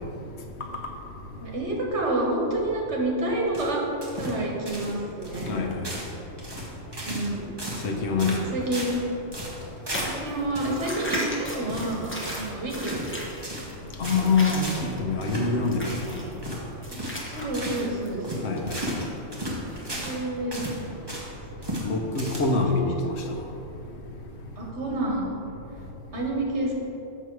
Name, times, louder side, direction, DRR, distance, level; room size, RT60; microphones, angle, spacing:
voice 1, 1.4-3.8 4.1-5.6 7.1-7.5 8.2-8.9 10.0-13.2 14.1-14.3 16.9-17.0 17.3-18.3 19.9-21.0 21.7-21.8 22.5-22.8 24.6-25.4 26.1-26.7, right 2 dB, 80° right, 1.6 m, -29 dB
sound 1, 3.5-4.4 4.7-5.0 5.2-5.5 5.8-6.1 6.4-7.3 7.6-7.9 8.2-9.0 9.3-10.2 10.5-10.7 11.0-11.3 11.7-12.5 12.8-13.1 13.4-13.7 14.0-14.3 14.6-14.9 15.2-15.5 15.8-16.1 16.4-16.6 16.9-17.2 17.5-17.9 18.2-20.2 20.5-21.3 21.6-21.9 22.1-22.7, equal, 20° right, 1.3 m, -35 dB
voice 2, 5.5-5.8 7.8-8.4 14.0-14.7 15.0-16.2 18.4-18.8 21.8-23.2, left 4 dB, 75° left, 1.1 m, -25 dB
sound 2, 9.9-19.0 19.7-20.1 20.8-20.9, equal, 10° left, 1.0 m, -37 dB
6.9 x 6.4 x 4.7 m
omnidirectional pair, 1.2 m